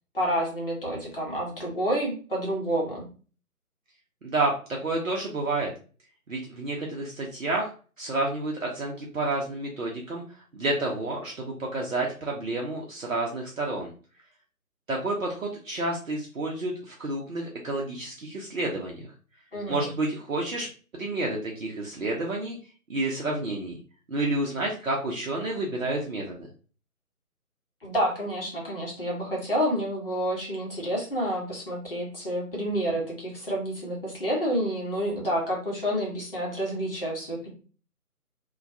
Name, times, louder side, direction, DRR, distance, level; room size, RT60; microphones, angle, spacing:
voice 1, 0.1-3.1 19.5-19.9 27.8-37.5, equal, 40° left, -3 dB, 0.8 m, -29 dB
voice 2, 4.2-4.5 4.8-5.7 6.3-7.7 8.0-10.2 10.5-13.9 14.9-19.0 19.7-20.7 20.9-22.6 22.9-23.8 24.1-26.4, right 2 dB, 65° right, -2 dB, 0.6 m, -29 dB
2.2 x 2.1 x 2.5 m, 0.38 s
figure-of-eight pair, 155°, 44 cm